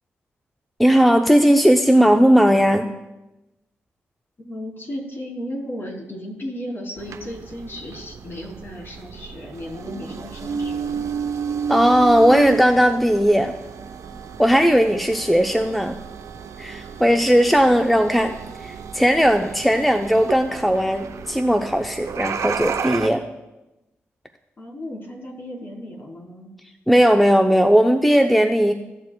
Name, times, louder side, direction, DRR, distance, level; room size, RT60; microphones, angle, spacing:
voice 1, 0.8-2.9 11.7-13.5 14.4-16.0 16.6-18.3 18.6-23.2 26.9-28.7, equal, ahead, 6 dB, 0.7 m, -17 dB
voice 2, 4.4-11.1 24.6-26.5, left 1 dB, 45° left, -2 dB, 3.5 m, -35 dB
sound 1, 7.0-23.1, right 6 dB, 70° right, 0.7 m, -32 dB
15.5 x 7.4 x 2.3 m, 0.98 s
supercardioid pair, 40°, 6 cm